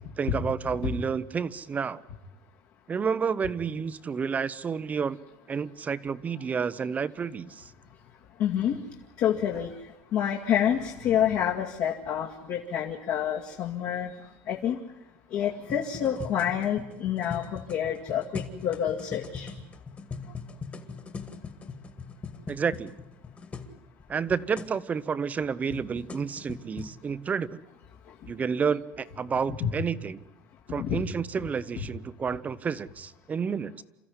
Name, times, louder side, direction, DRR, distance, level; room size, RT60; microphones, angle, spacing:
voice 1, 0.2-2.0 2.9-5.2 5.5-7.7 22.5-22.9 24.1-27.6 28.3-30.2 30.7-33.8, right 6 dB, 20° right, 15 dB, 0.8 m, -30 dB
voice 2, 8.4-8.8 9.2-9.7 10.1-14.1 14.5-14.8 15.3-19.5 29.6-29.7 30.8-31.0, left 9 dB, 55° left, -1 dB, 2.2 m, -28 dB
sound 1, 15.6-23.7 24.0-24.1 24.3-24.7 25.4-26.9, left 5 dB, 20° left, 2.0 m, -41 dB
28.5 x 14.5 x 9.7 m, 0.93 s
cardioid pair, 150°, 7 cm